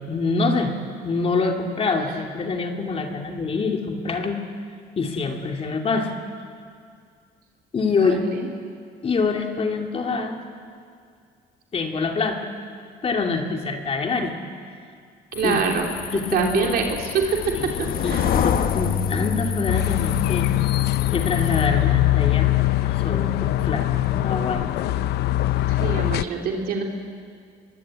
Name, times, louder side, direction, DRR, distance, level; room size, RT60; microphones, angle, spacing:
voice 1, 0.1-0.8 1.0-4.4 5.0-6.2 7.7-8.2 9.0-10.4 11.7-12.5 13.0-14.4 15.4-15.6 16.1-16.7 17.5-20.5 21.1-22.5 22.8-23.9 24.1-24.9, left 4 dB, 35° left, 3 dB, 2.6 m, -25 dB
sound 1, 15.3-21.7, left 8 dB, 60° left, 1.4 m, -27 dB
voice 2, 15.3-15.8 16.1-17.5 18.1-18.3 25.7-26.8, right 5 dB, 65° right, 1 dB, 3.2 m, -24 dB
sound 2, 19.7-26.2, left 16 dB, 80° left, 0.7 m, -22 dB
23.5 x 22.5 x 8.9 m, 2.2 s
cardioid pair, 110°, 17 cm